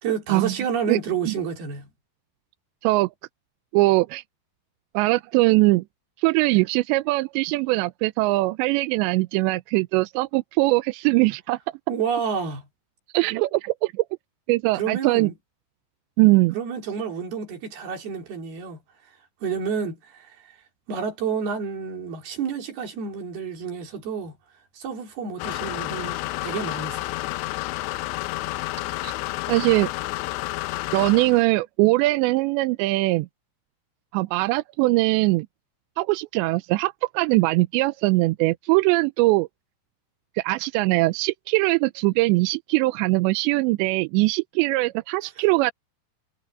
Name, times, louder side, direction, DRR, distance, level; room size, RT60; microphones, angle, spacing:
voice 1, 0.0-1.9 11.9-12.7 14.7-15.4 16.5-18.8 19.4-20.3 20.9-24.4 24.8-27.1, right 6 dB, 60° right, 5.5 m, -29 dB
voice 2, 3.7-4.2 4.9-5.8 6.2-11.6 13.1-13.9 14.5-15.3 16.2-16.6 29.0-29.1 29.5-29.9 30.9-33.3 34.1-35.5 36.0-39.5 40.4-45.7, right 21 dB, 90° right, 2.9 m, -21 dB
sound 1, 25.4-31.4, left 18 dB, 90° left, 2.9 m, -30 dB
omnidirectional pair, 5.1 m